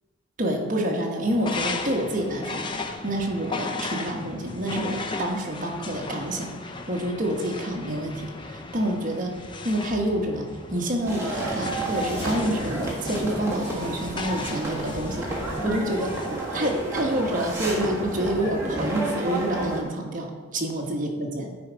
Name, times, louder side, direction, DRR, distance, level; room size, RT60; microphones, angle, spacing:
voice 1, 0.4-9.3 9.6-15.3 15.6-16.2 16.5-21.5, right 1 dB, 40° right, 0 dB, 1.2 m, -28 dB
sound 1, 1.3-17.5, left 3 dB, 25° left, 0.5 m, -36 dB
sound 2, 11.0-19.8, right 2 dB, 15° right, 1.6 m, -31 dB
9.7 x 4.4 x 5.0 m, 1.4 s
head